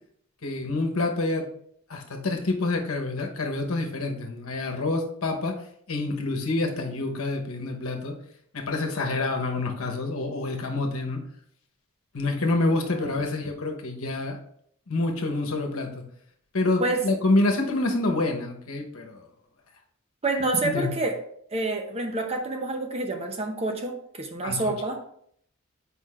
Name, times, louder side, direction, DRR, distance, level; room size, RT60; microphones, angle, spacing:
voice 1, 0.4-1.5 1.9-5.5 5.9-8.1 8.5-11.2 12.1-14.4 14.9-16.0 16.5-19.2 20.6-20.9 24.4-24.7, left 2 dB, 75° left, 2 dB, 1.1 m, -27 dB
voice 2, 20.2-21.2 21.5-25.0, right 2 dB, 30° right, 4 dB, 0.7 m, -28 dB
8.4 x 5.0 x 2.5 m, 0.67 s
head